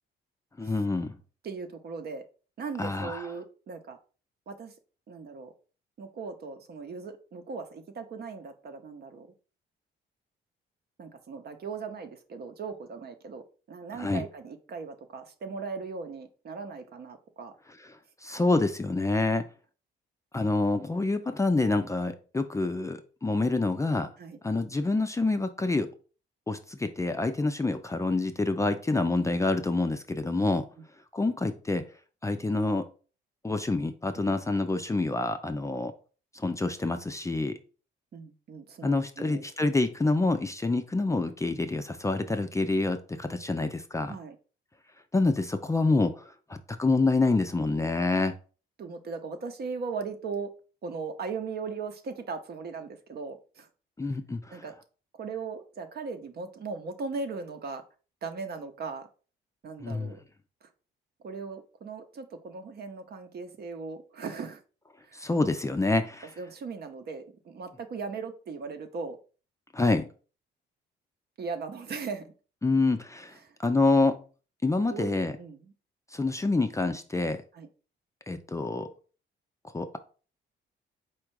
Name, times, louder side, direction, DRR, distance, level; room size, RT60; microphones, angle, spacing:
voice 1, 0.6-1.1 2.8-3.3 14.0-14.2 18.2-19.4 20.3-24.1 24.4-25.9 26.5-30.6 31.1-31.8 32.2-32.9 33.4-35.9 36.3-37.5 38.8-44.2 45.1-48.3 54.0-54.6 59.8-60.1 65.1-66.3 69.7-70.1 72.6-73.3 73.6-74.2 74.6-75.3 76.1-77.4 78.3-78.9 79.7-80.0, left 3 dB, 15° left, 8 dB, 0.4 m, -27 dB
voice 2, 1.4-2.2 2.6-4.0 4.5-4.7 5.1-5.5 6.0-9.3 11.0-13.4 13.7-17.5 18.3-18.4 24.2-24.4 34.2-34.3 38.1-39.5 44.1-44.4 48.8-50.5 50.8-53.7 54.5-54.7 55.1-57.8 58.2-59.1 59.6-60.2 60.6-60.7 61.2-64.6 65.0-65.3 66.4-69.2 71.4-72.3 73.3-73.6 74.9-75.7 77.5-77.7, right 4 dB, 55° right, 7 dB, 0.8 m, -38 dB
4.4 x 2.4 x 4.6 m, 0.37 s
cardioid pair, 90°, 20 cm